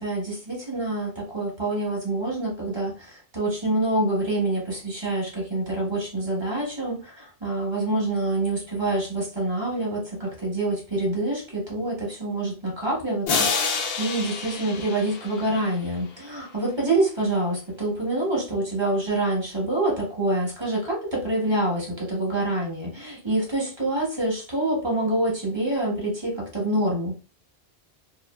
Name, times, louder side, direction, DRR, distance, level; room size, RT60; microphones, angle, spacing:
voice 1, 0.0-27.2, right 2 dB, 25° right, -3 dB, 0.9 m, -26 dB
sound 1, 13.3-15.9, left 5 dB, 75° left, 0.8 m, -28 dB
2.6 x 2.2 x 2.3 m, 0.32 s
omnidirectional pair, 1.1 m